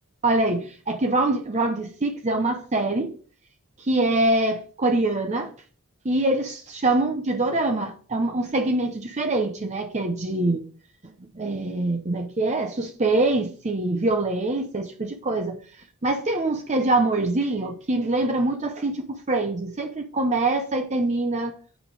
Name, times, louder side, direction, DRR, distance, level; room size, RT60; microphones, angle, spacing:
voice 1, 0.2-3.1 3.8-5.5 6.0-10.6 11.3-15.6 16.0-21.6, right 2 dB, 30° right, 0.7 m, -24 dB
8.2 x 5.6 x 4.7 m
head